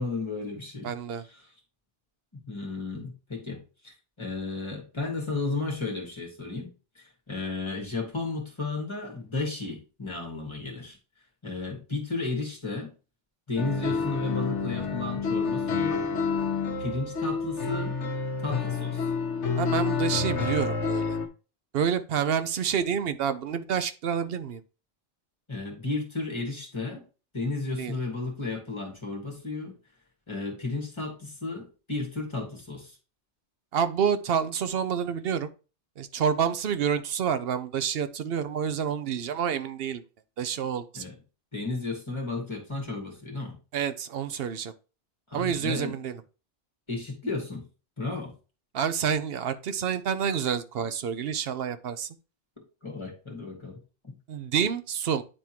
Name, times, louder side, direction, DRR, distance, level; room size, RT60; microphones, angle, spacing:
voice 1, 0.0-0.9 1.3-1.4 2.3-11.0 11.4-12.9 13.5-16.0 16.8-18.0 18.4-19.1 25.5-27.0 27.3-29.7 30.3-33.0 40.9-41.1 41.5-43.6 45.3-45.9 46.9-47.7 48.0-48.3 52.8-53.8 54.1-54.2, left 3 dB, 25° left, 1.9 m, -33 dB
voice 2, 0.8-1.2 19.6-21.2 21.7-24.6 27.8-27.9 33.7-35.5 36.0-40.0 40.4-41.0 43.7-44.7 45.3-46.2 48.7-52.1 54.3-55.2, right 7 dB, 60° right, 0.8 m, -28 dB
sound 1, 13.6-21.3, left 5 dB, 80° left, 1.2 m, -29 dB
9.9 x 3.6 x 2.9 m
omnidirectional pair, 1.2 m